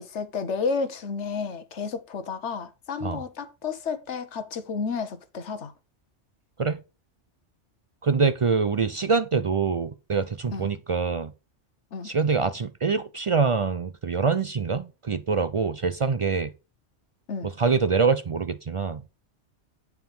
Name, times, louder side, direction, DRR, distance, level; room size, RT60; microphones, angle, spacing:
voice 1, 0.0-5.7 10.5-10.7 11.9-12.1 17.3-17.5, left 5 dB, 75° left, 1.3 m, -31 dB
voice 2, 8.0-11.3 12.0-16.5 17.4-19.0, right 5 dB, 55° right, 0.3 m, -25 dB
9.4 x 4.8 x 5.3 m
omnidirectional pair, 1.2 m